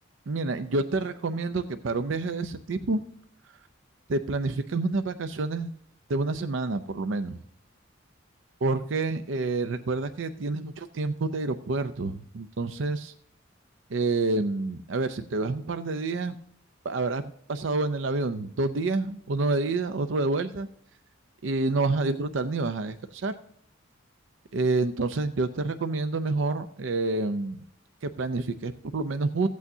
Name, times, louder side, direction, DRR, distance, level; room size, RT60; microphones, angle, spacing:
voice 1, 0.3-3.0 4.1-5.7 6.1-7.4 8.6-13.1 13.9-16.4 16.8-20.7 21.4-23.3 24.5-27.6 28.0-29.5, right 3 dB, 70° right, 9 dB, 0.5 m, -28 dB
15.0 x 8.4 x 2.7 m, 0.68 s
head